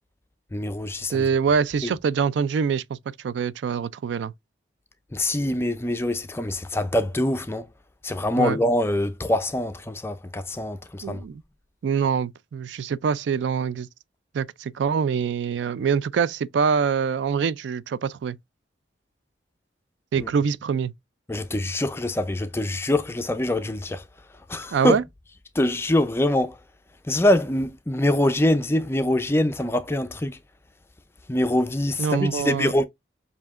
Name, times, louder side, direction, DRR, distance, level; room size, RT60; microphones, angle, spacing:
voice 1, 0.5-1.3 1.8-2.0 5.1-7.7 8.0-11.2 20.2-20.3 21.3-24.0 24.5-25.0 25.5-26.6 27.0-30.4 31.3-32.9, left 1 dB, 15° left, 0.4 m, -24 dB
voice 2, 1.1-4.3 8.4-8.6 11.0-11.4 11.8-13.9 14.3-18.4 20.1-20.9 24.7-25.0 32.0-32.7, right 6 dB, 75° right, 0.3 m, -24 dB
7.0 x 2.7 x 2.4 m
head